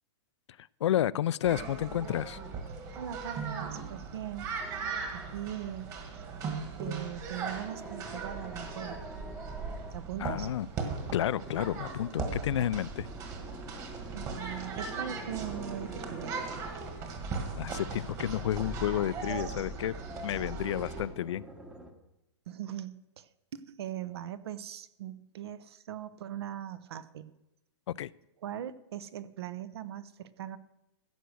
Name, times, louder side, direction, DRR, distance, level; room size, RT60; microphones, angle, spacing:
voice 1, 0.8-2.4 10.2-10.7 11.1-13.1 17.6-19.9 20.2-21.4 28.0-28.1, left 11 dB, 70° left, 20 dB, 0.4 m, -31 dB
sound 1, 1.4-21.1, right 4 dB, 20° right, 1.7 m, -38 dB
voice 2, 2.9-4.5 5.1-6.2 6.8-9.0 9.9-10.5 14.1-16.4 22.5-27.3 28.4-30.6, right 11 dB, 60° right, 15 dB, 0.8 m, -40 dB
sound 2, 4.6-5.5 7.3-9.9 10.8-12.2 12.8-16.9 18.3-21.9, right 1 dB, 5° right, 1.0 m, -47 dB
14.5 x 8.1 x 6.3 m, 0.91 s
hypercardioid pair, 165°, 15 cm